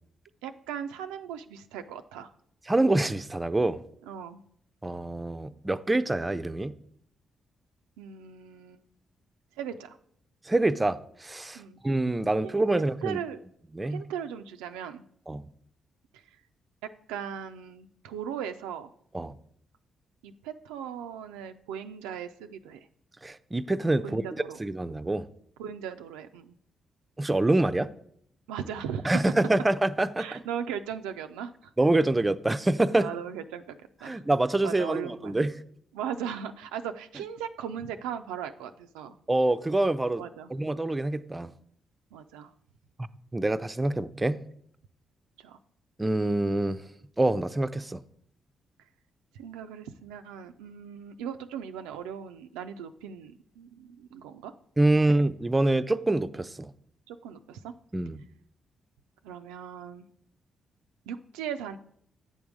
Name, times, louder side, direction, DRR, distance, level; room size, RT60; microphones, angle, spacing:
voice 1, 0.4-2.3 4.1-4.4 8.0-8.8 9.6-10.0 11.5-11.8 12.4-13.4 13.9-15.0 16.1-16.2 17.1-18.9 20.2-22.9 24.0-24.6 25.6-26.5 28.5-29.2 30.2-31.7 33.0-34.2 34.6-35.4 35.9-39.2 40.2-40.5 42.1-42.5 45.4-45.6 49.3-54.5 55.1-55.2 57.1-57.7 59.2-60.1 61.1-61.8, right 8 dB, 90° right, 0.3 m, -38 dB
voice 2, 2.7-3.8 4.8-6.7 10.5-13.2 13.7-14.0 15.3-15.4 19.1-19.4 23.2-24.2 24.6-25.3 27.2-27.9 29.0-30.4 31.8-33.1 34.0-35.5 39.3-40.2 40.5-41.5 43.3-44.4 46.0-46.8 47.2-48.0 54.8-56.7 57.9-58.2, right 2 dB, 20° right, 0.4 m, -26 dB
8.0 x 3.6 x 6.1 m
supercardioid pair, 50°, 0 cm